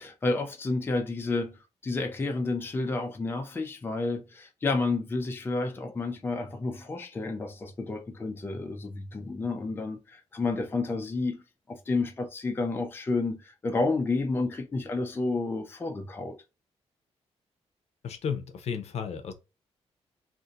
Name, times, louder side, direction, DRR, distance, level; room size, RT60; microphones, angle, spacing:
voice 1, 0.0-1.6 1.8-11.4 11.7-16.3, left 3 dB, 20° left, 0.4 m, -30 dB
voice 2, 18.0-19.3, left 7 dB, 70° left, 0.6 m, -33 dB
2.6 x 2.5 x 3.8 m
wide cardioid pair, 170°, 11 cm